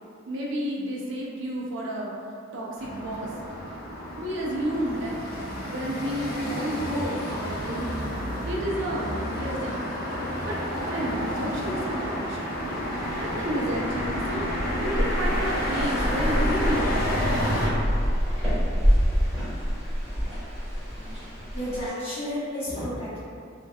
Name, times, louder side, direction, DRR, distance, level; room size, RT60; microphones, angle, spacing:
voice 1, 0.3-2.1 2.5-3.3 4.2-5.2 5.7-7.9 8.5-9.9 10.5-12.5 13.2-14.5 14.8-17.2, equal, 65° right, -4 dB, 0.4 m, -31 dB
sound 1, 2.8-17.7, equal, 50° left, 0.5 m, -30 dB
sound 2, 12.9-21.9, equal, 5° right, 1.1 m, -27 dB
voice 2, 21.5-23.2, equal, 30° left, -11 dB, 0.8 m, -32 dB
2.7 x 2.1 x 2.2 m, 2.4 s
head